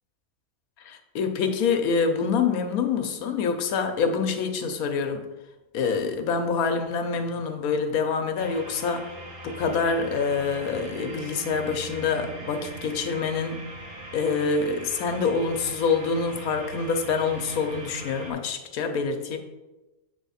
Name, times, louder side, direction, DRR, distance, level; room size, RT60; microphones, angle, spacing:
voice 1, 0.8-5.3 5.7-9.1 9.4-13.7 14.1-19.4, left 5 dB, 80° left, 6 dB, 1.2 m, -26 dB
sound 1, 8.4-18.3, right 2 dB, 85° right, 1.9 m, -41 dB
7.9 x 3.5 x 5.6 m, 1.1 s
omnidirectional pair, 1.5 m